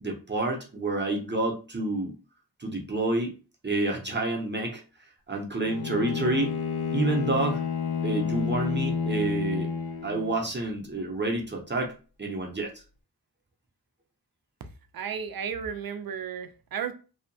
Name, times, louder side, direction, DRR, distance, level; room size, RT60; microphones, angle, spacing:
voice 1, 0.0-2.1 2.6-3.4 3.6-4.8 5.3-6.5 6.9-7.6 8.0-9.7 10.0-12.7, right 2 dB, 30° right, 0 dB, 0.6 m, -29 dB
Bowed string instrument, 5.6-10.5, left 6 dB, 75° left, 0.5 m, -30 dB
voice 2, 14.9-16.9, right 7 dB, 65° right, 9 dB, 0.5 m, -33 dB
2.7 x 2.1 x 2.6 m, 0.34 s
wide cardioid pair, 60°, 38 cm